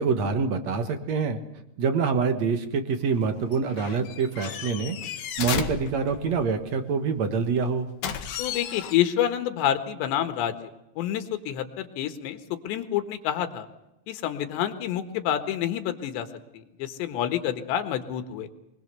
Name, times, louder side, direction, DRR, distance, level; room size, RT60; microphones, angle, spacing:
voice 1, 0.0-1.4 1.8-5.0 5.4-7.9, right 5 dB, 55° right, 8 dB, 2.0 m, -26 dB
sound 1, 3.0-6.6 8.0-8.9, left 9 dB, 65° left, 3.1 m, -34 dB
voice 2, 8.4-10.6 11.0-13.7 14.1-16.3 16.5-18.5, left 11 dB, 80° left, 8 dB, 3.7 m, -28 dB
24.5 x 21.0 x 6.9 m, 0.88 s
omnidirectional pair, 5.1 m